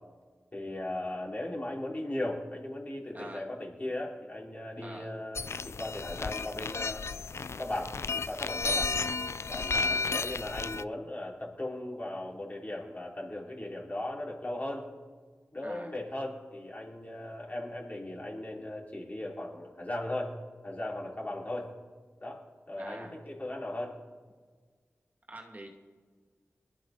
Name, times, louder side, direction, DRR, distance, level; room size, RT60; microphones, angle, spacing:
voice 1, 0.5-7.0 7.6-8.9 9.5-14.9 15.5-20.4 20.6-21.7 22.2-24.0, left 1 dB, 30° left, -3 dB, 4.6 m, -37 dB
voice 2, 3.1-3.5 4.8-5.1 9.7-10.0 15.6-15.9 22.8-23.2 25.3-25.7, right 1 dB, 35° right, 1 dB, 2.2 m, -45 dB
sound 1, 5.4-10.8, left 4 dB, 60° left, 0.3 m, -33 dB
21.5 x 12.5 x 4.0 m, 1.5 s
cardioid pair, 45°, 5 cm